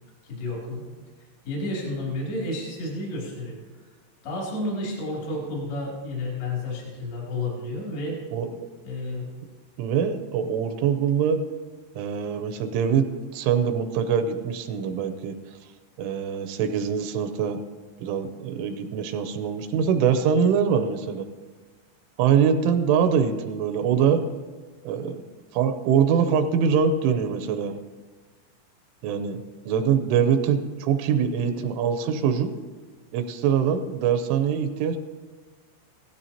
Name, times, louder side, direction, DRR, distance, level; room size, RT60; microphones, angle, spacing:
voice 1, 0.2-0.8 1.4-3.6 4.2-8.2 8.8-9.3, left 2 dB, 65° left, -3 dB, 4.8 m, -31 dB
voice 2, 9.8-11.4 12.0-13.1 13.3-15.4 16.0-17.6 18.0-21.3 22.2-24.2 24.8-25.2 25.5-27.7 29.0-32.5 33.1-35.0, right 7 dB, 85° right, 7 dB, 3.1 m, -23 dB
16.5 x 15.0 x 2.8 m, 1.4 s
omnidirectional pair, 5.6 m